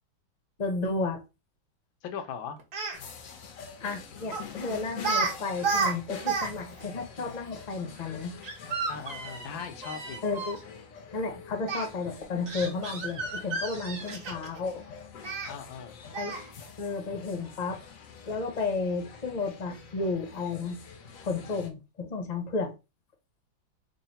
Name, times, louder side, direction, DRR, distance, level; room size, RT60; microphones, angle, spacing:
voice 1, 0.6-1.2 3.8-8.3 10.2-10.6 11.1-14.8 16.2-16.3 16.8-17.8 18.3-20.8 21.2-22.7, left 3 dB, 40° left, 0.6 m, -32 dB
voice 2, 2.0-2.6 8.9-10.2 15.5-16.0, left 7 dB, 80° left, 1.4 m, -39 dB
Speech, 2.6-3.0 4.3-4.5 5.0-5.3 5.6-6.5 6.8-6.9 8.4-10.6 11.7-11.8 12.5-14.6 15.2-15.5 16.1-16.5, right 4 dB, 55° right, 1.1 m, -31 dB
sound 1, 2.9-21.7, left 6 dB, 65° left, 0.8 m, -46 dB
3.7 x 2.1 x 4.1 m
omnidirectional pair, 2.1 m